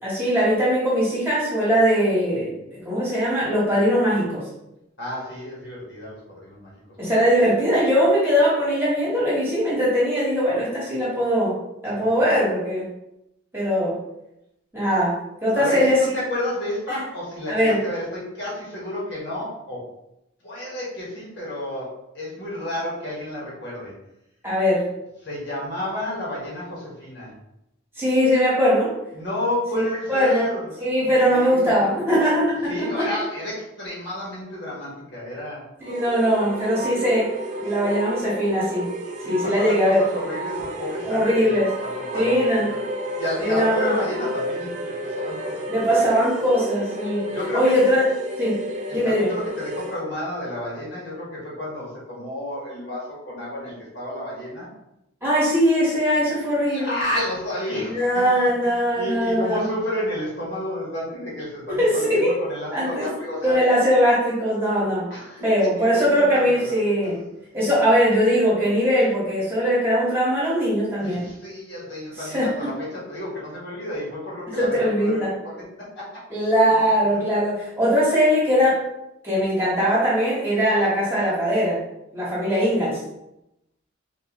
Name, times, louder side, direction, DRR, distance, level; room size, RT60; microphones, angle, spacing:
voice 1, 0.0-4.5 7.0-11.5 11.8-12.9 13.5-14.0 14.7-16.0 16.9-17.0 17.5-17.8 24.4-24.9 28.0-28.9 29.7-30.5 30.8-32.6 32.9-33.1 35.8-37.3 37.6-38.9 39.2-40.0 41.0-41.7 42.1-42.7 43.4-43.9 45.7-47.3 47.5-48.0 48.4-48.6 48.9-49.3 55.2-57.0 57.9-59.7 61.7-62.3 62.7-63.1 63.4-65.0 65.4-67.2 67.5-71.3 72.2-72.7 74.6-75.3 76.3-78.8 79.2-81.8 82.1-83.0, equal, 10° right, -8 dB, 1.3 m, -21 dB
voice 2, 5.0-6.7 11.8-11.9 15.5-19.9 20.4-24.0 25.2-27.3 29.1-31.9 32.7-35.7 39.2-42.8 43.2-46.0 47.3-47.8 48.9-54.7 56.7-63.6 65.1-66.8 71.0-76.2 76.6-76.7, left 1 dB, 60° left, -5 dB, 1.5 m, -31 dB
sound 1, 35.8-50.0, equal, 35° right, 0.4 m, -32 dB
3.7 x 3.1 x 3.0 m, 0.87 s
head